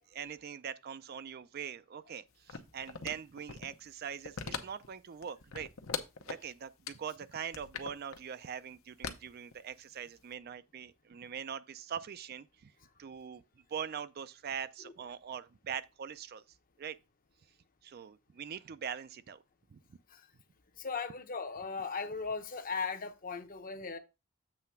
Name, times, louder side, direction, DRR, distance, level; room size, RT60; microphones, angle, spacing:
voice 1, 0.1-5.7 6.3-12.7 13.0-13.4 13.7-16.4 16.8-17.0 17.8-19.4 19.7-19.8, right 7 dB, 45° right, 0.4 m, -42 dB
sound 1, 2.5-3.8 4.2-4.9 5.2-6.5 6.9-7.0 7.4-8.2 9.0-10.0 10.3-10.4, left 5 dB, 75° left, 0.8 m, -40 dB
voice 2, 20.8-24.0, left 5 dB, 40° left, 0.8 m, -38 dB
7.7 x 3.3 x 5.7 m
head